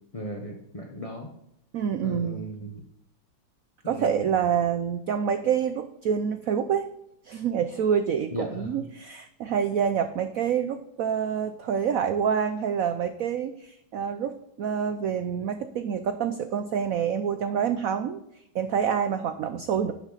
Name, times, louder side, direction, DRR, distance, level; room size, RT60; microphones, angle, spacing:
voice 1, 0.1-1.3 2.0-2.7 3.8-4.3 8.3-8.9, equal, 30° left, 0 dB, 0.6 m, -36 dB
voice 2, 1.7-2.5 3.9-6.9 7.2-18.2 18.5-19.9, right 7 dB, 85° right, 9 dB, 0.7 m, -27 dB
11.5 x 7.1 x 4.0 m, 0.80 s
omnidirectional pair, 2.1 m